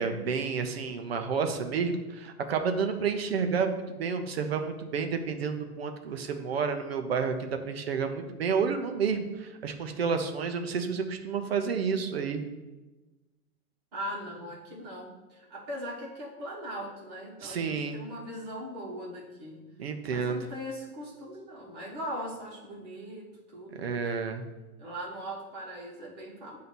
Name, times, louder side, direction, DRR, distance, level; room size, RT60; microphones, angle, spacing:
voice 1, 0.0-12.4 17.4-18.0 19.8-20.4 23.8-24.4, right 5 dB, 45° right, 6 dB, 0.6 m, -30 dB
voice 2, 13.9-19.6 20.1-23.8 24.8-26.6, equal, 25° right, -4 dB, 1.4 m, -40 dB
7.9 x 2.8 x 5.9 m, 1.1 s
hypercardioid pair, 170°, 45 cm